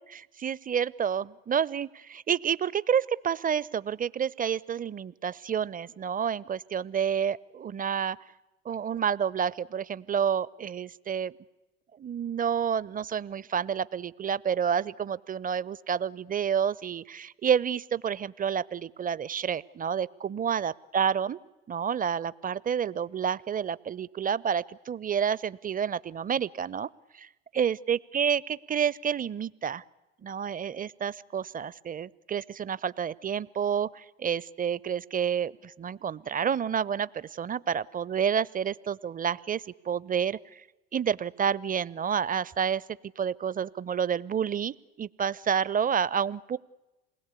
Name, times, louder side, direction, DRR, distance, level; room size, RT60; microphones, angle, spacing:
voice 1, 0.0-8.2 8.6-11.3 12.0-21.4 21.7-27.3 27.5-29.8 30.2-40.6 40.9-42.8 43.2-46.6, right 7 dB, 25° right, 20 dB, 0.9 m, -29 dB
28.0 x 20.5 x 8.4 m, 1.0 s
hypercardioid pair, 65°, 31 cm